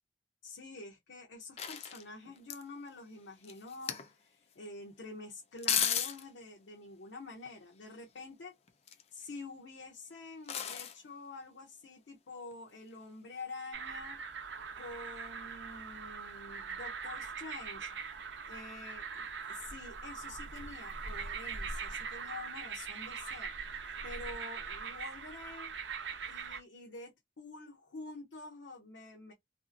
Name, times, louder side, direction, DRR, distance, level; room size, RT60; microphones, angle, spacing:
voice 1, 0.4-8.5 9.1-14.2 14.8-17.9 18.4-23.5 24.0-25.7 26.3-29.3, left 3 dB, 90° left, 0.7 m, -48 dB
sound 1, 1.6-2.6 3.4-4.1 5.6-6.2 8.7-9.2 10.5-11.0 12.5-12.6, left 9 dB, 35° left, 0.4 m, -34 dB
sound 2, 13.7-26.6, right 5 dB, 75° right, 0.6 m, -42 dB
2.6 x 2.4 x 2.5 m
head